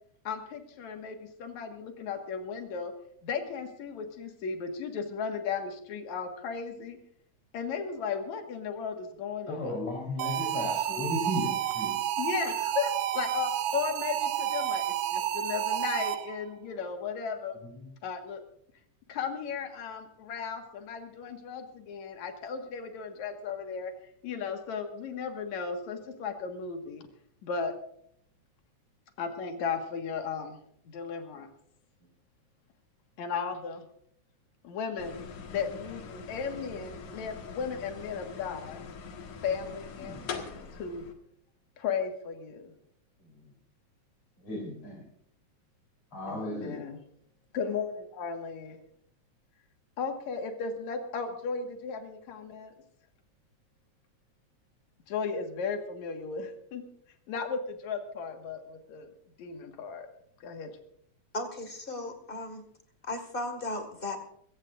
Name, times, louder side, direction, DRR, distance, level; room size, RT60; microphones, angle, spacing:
voice 1, 0.2-2.9 3.2-7.0 7.5-9.8 12.2-17.6 18.0-18.4 19.1-27.1 27.4-27.7 29.2-30.6 30.9-31.5 33.2-33.8 34.6-38.8 39.4-41.1 41.8-42.7 46.2-47.0 47.5-48.8 50.0-52.7 55.1-56.8 57.3-59.1 59.4-60.1 60.4-60.7, left 6 dB, 75° left, 4 dB, 3.0 m, -35 dB
voice 2, 9.5-11.9 40.0-40.2 44.4-45.0 46.1-46.8, left 1 dB, 50° left, -3 dB, 4.6 m, -34 dB
sound 1, 10.2-16.5, right 11 dB, 85° right, 2.1 m, -30 dB
sound 2, 35.0-41.1, left 6 dB, 90° left, 3.1 m, -43 dB
voice 3, 61.3-62.6 63.1-64.2, left 2 dB, 20° left, 6 dB, 1.6 m, -36 dB
22.5 x 17.0 x 2.5 m, 0.68 s
omnidirectional pair, 3.3 m